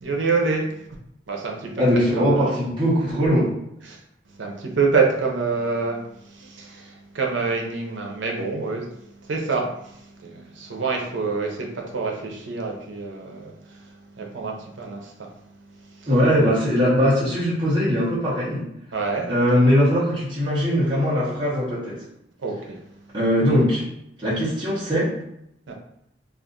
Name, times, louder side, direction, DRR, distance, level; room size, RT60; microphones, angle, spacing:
voice 1, 0.0-0.7 1.3-1.8 2.3-2.5 3.9-4.0 4.4-8.9 9.2-15.3 16.0-16.1 18.9-19.3 22.4-22.8 25.7-25.8, right 4 dB, 80° right, 0 dB, 0.7 m, -27 dB
voice 2, 1.8-3.5 16.1-18.6 19.3-22.0 23.1-23.9 24.2-25.2, equal, 25° right, -11 dB, 0.9 m, -20 dB
2.5 x 2.4 x 3.8 m, 0.78 s
head